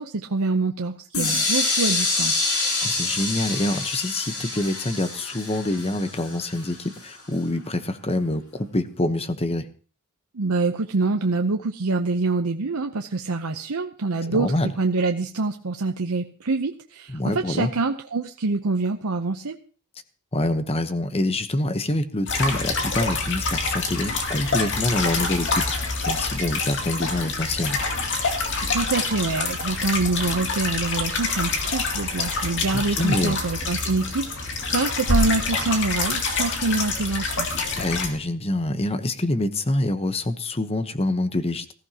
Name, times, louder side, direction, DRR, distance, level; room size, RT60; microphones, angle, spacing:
voice 1, 0.0-2.5 10.3-19.6 28.7-37.5, right 3 dB, 85° right, 4 dB, 0.8 m, -26 dB
sound 1, 1.1-7.0, left 3 dB, 85° left, 5.7 m, -26 dB
voice 2, 2.8-9.7 14.3-14.7 17.1-17.7 20.3-27.8 32.7-33.4 37.8-41.7, left 1 dB, 25° left, 10 dB, 1.0 m, -26 dB
sound 2, 22.3-38.1, left 3 dB, 55° left, 2.3 m, -26 dB
20.0 x 14.5 x 2.9 m, 0.38 s
head